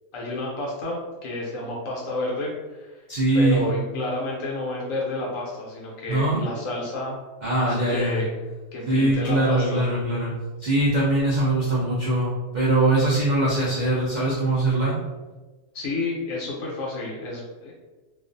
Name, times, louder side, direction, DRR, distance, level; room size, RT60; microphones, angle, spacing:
voice 1, 0.1-3.0 3.3-7.2 7.6-8.3 8.7-9.8 15.7-17.7, left 2 dB, 70° left, -3 dB, 0.9 m, -30 dB
voice 2, 3.1-3.6 6.1-6.4 7.4-8.2 8.9-10.3 10.6-14.9, right 2 dB, 90° right, -8 dB, 0.4 m, -22 dB
2.4 x 2.3 x 2.5 m, 1.2 s
omnidirectional pair, 1.5 m